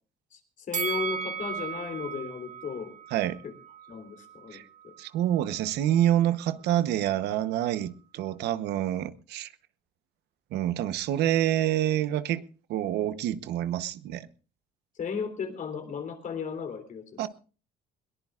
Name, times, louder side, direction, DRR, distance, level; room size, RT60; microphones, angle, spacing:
voice 1, 0.3-2.9 3.4-3.5 3.9-4.9 15.0-17.3, left 6 dB, 50° left, 3.3 m, -35 dB
Bell, 0.7-3.9 4.3-4.4, right 7 dB, 45° right, 1.2 m, -35 dB
voice 2, 3.1-3.4 4.5-4.6 5.0-9.5 10.5-12.4 12.7-14.3 17.2-17.3, right 12 dB, 80° right, 1.0 m, -27 dB
21.5 x 18.5 x 2.5 m
cardioid pair, 110°, 17 cm